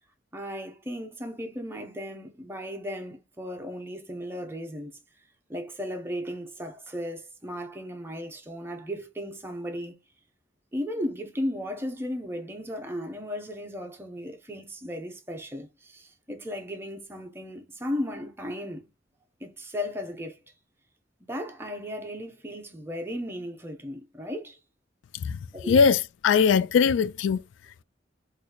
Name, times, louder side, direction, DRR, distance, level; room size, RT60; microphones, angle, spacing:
voice 1, 0.3-4.9 5.5-9.9 10.7-18.9 19.4-20.4 21.3-24.6 25.5-25.8, equal, 15° right, 0.7 m, -35 dB
voice 2, 25.7-27.4, left 6 dB, 80° left, 0.3 m, -20 dB
3.0 x 2.6 x 3.9 m
head